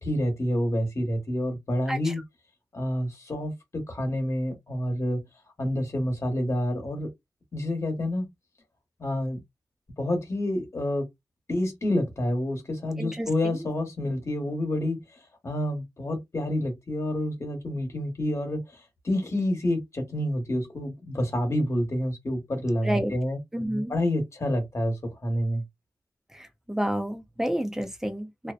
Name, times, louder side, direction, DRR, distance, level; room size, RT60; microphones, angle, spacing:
voice 1, 0.0-2.2 2.7-5.2 5.6-7.1 7.5-8.3 9.0-9.4 10.0-11.0 11.5-15.0 15.4-18.8 19.0-23.4 23.9-25.6, left 1 dB, 40° left, 1.1 m, -28 dB
voice 2, 13.0-13.7 22.8-23.1 23.5-23.9 26.3-28.5, equal, 5° right, 0.5 m, -30 dB
2.6 x 2.0 x 2.4 m
wide cardioid pair, 100°, 7 cm